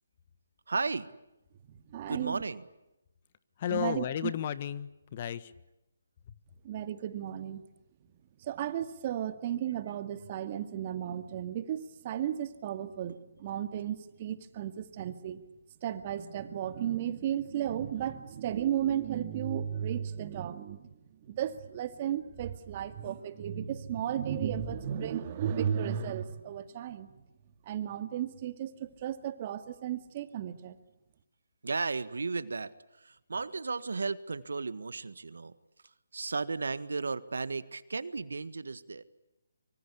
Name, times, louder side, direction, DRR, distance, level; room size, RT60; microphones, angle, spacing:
voice 1, 0.7-1.1 2.1-2.6 31.6-35.5 36.1-39.0, right 4 dB, 75° right, 15 dB, 1.6 m, -34 dB
voice 2, 1.7-2.4 3.7-4.3 6.6-7.6 8.4-15.4 15.8-27.1 27.7-30.8, right 10 dB, 35° right, 11 dB, 2.1 m, -34 dB
voice 3, 3.6-5.5 6.3-6.4, left 10 dB, 35° left, 15 dB, 1.4 m, -33 dB
25.0 x 24.5 x 8.5 m, 0.92 s
figure-of-eight pair, 150°, 0 cm